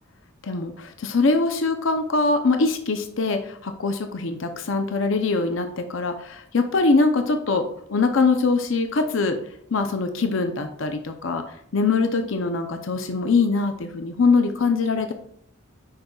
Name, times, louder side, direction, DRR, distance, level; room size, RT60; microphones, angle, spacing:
voice 1, 0.4-7.6 7.9-9.4 9.7-11.4 11.7-15.1, left 3 dB, 70° left, 6 dB, 0.6 m, -22 dB
9.4 x 5.3 x 2.4 m, 0.67 s
head